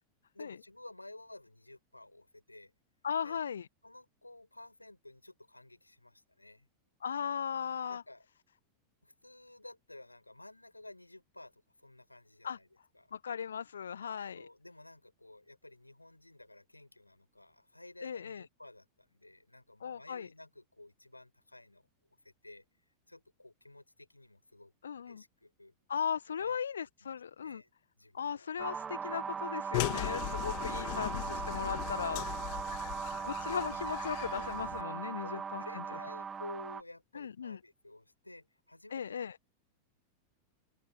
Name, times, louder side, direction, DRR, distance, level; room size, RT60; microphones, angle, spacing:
voice 1, 0.3-2.7 3.2-3.4 3.8-6.7 7.9-8.3 9.0-12.7 12.9-13.1 14.3-21.9 22.2-22.6 23.1-25.7 26.4-26.6 27.0-27.7 28.0-28.5 31.5-31.7 34.3-34.5 35.2-39.2, left 2 dB, 85° left, 7.3 m, -53 dB
voice 2, 3.0-3.7 7.0-8.0 12.4-12.6 13.1-14.5 18.0-18.4 19.8-20.3 24.8-25.2 25.9-27.6 28.1-32.6 33.2-35.8 37.1-37.6 38.9-39.4, left 7 dB, 70° left, 1.3 m, -37 dB
sound 1, 28.6-36.8, right 6 dB, 20° right, 0.6 m, -39 dB
sound 2, 29.7-34.8, left 40 dB or more, 45° left, 1.9 m, -39 dB
figure-of-eight pair, 90°, 0 cm